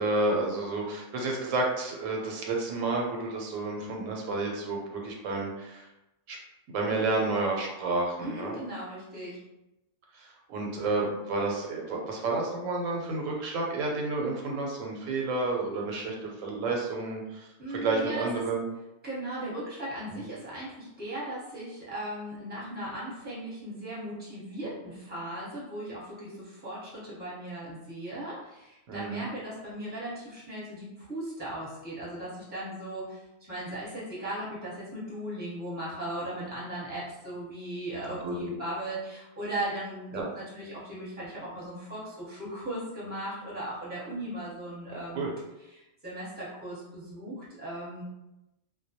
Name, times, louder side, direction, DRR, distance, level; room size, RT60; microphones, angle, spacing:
voice 1, 0.0-5.9 6.3-6.4 6.7-8.6 10.1-18.7 20.1-20.2 28.9-29.3 38.1-38.6 40.1-40.2 44.9-45.3, right 3 dB, 90° right, 0 dB, 0.9 m, -30 dB
voice 2, 8.2-9.4 17.6-18.3 19.0-33.2 33.5-45.3 45.7-48.0, right 1 dB, 10° right, -8 dB, 0.8 m, -37 dB
2.1 x 2.1 x 2.7 m, 0.93 s
omnidirectional pair, 1.3 m